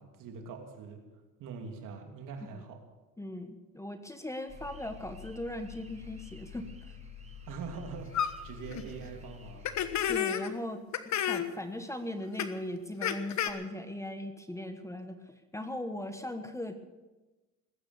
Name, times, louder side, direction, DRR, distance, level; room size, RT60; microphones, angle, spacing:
voice 1, 0.0-2.8 7.5-9.7, right 5 dB, 60° right, 4 dB, 3.0 m, -43 dB
voice 2, 3.2-6.9 10.1-10.8 11.3-15.2 15.5-16.7, left 1 dB, 10° left, 8 dB, 1.3 m, -39 dB
sound 1, 4.5-10.1, left 6 dB, 20° right, 5.8 m, -48 dB
sound 2, 8.1-8.3 8.7-8.8 9.6-10.5 10.9-11.5 12.4-12.5 13.0-13.5, left 9 dB, 50° left, 1.3 m, -30 dB
20.0 x 8.8 x 7.2 m, 1.1 s
supercardioid pair, 95°, 36 cm